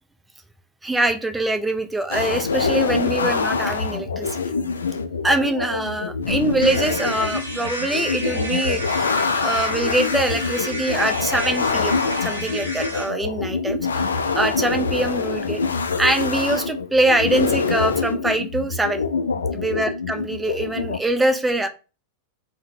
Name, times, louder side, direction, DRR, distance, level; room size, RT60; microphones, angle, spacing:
voice 1, 0.8-4.4 5.2-9.1 9.4-14.0 14.3-15.6 16.0-19.0 19.5-21.7, right 2 dB, 5° right, 0.4 m, -23 dB
sound 1, 2.1-21.0, left 4 dB, 70° left, 0.3 m, -25 dB
sound 2, 6.6-13.1, right 1 dB, 75° right, 0.8 m, -32 dB
3.8 x 2.1 x 2.5 m
figure-of-eight pair, 90°, 0 cm